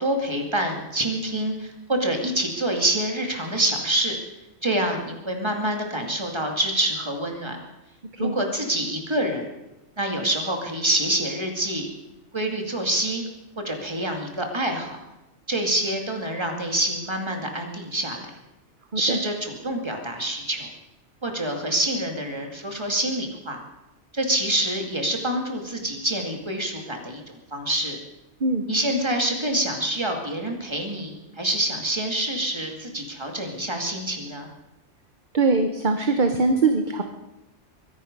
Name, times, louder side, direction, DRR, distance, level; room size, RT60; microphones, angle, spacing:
voice 1, 0.0-4.2 4.6-7.6 8.2-9.5 10.0-11.9 12.3-13.3 13.6-15.0 15.5-18.3 19.0-20.7 21.2-23.6 24.1-28.0 28.7-34.5, right 1 dB, 25° right, 3 dB, 2.3 m, -26 dB
voice 2, 35.3-37.0, right 3 dB, 45° right, 6 dB, 1.1 m, -22 dB
23.0 x 10.5 x 5.3 m, 0.95 s
omnidirectional pair, 1.2 m